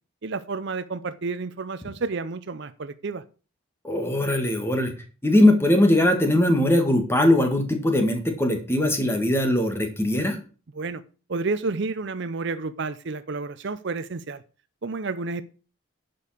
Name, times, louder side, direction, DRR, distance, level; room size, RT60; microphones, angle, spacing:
voice 1, 0.2-3.2 10.7-11.0 11.3-14.4 14.8-15.4, right 3 dB, 50° right, 14 dB, 0.5 m, -30 dB
voice 2, 3.8-4.9 5.2-10.4, left 1 dB, 10° left, 4 dB, 1.7 m, -20 dB
11.0 x 5.3 x 6.4 m, 0.37 s
head